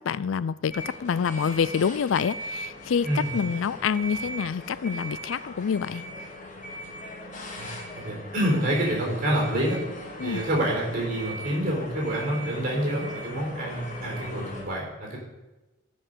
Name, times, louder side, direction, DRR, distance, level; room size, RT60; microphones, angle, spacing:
voice 1, 0.0-6.0 10.2-10.4, left 6 dB, 80° left, 18 dB, 0.4 m, -27 dB
sound 1, 0.7-14.6, equal, 40° left, 2.4 m, -39 dB
voice 2, 7.6-9.8 10.2-15.2, right 1 dB, 45° right, -1 dB, 4.2 m, -27 dB
13.5 x 5.5 x 6.7 m, 1.1 s
head